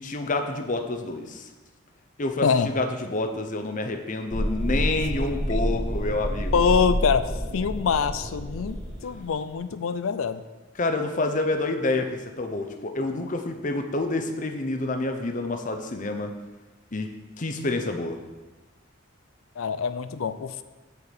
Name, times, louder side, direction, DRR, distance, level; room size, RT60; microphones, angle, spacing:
voice 1, 0.0-1.5 2.2-2.5 2.7-6.7 10.8-16.3 16.9-17.1 17.4-18.2, left 2 dB, 40° left, 5 dB, 0.7 m, -28 dB
sound 1, 4.3-9.4, equal, 20° right, 1.6 m, -29 dB
voice 2, 6.5-10.4 19.6-20.6, left 6 dB, 85° left, 13 dB, 0.4 m, -25 dB
8.0 x 4.7 x 7.0 m, 1.2 s
head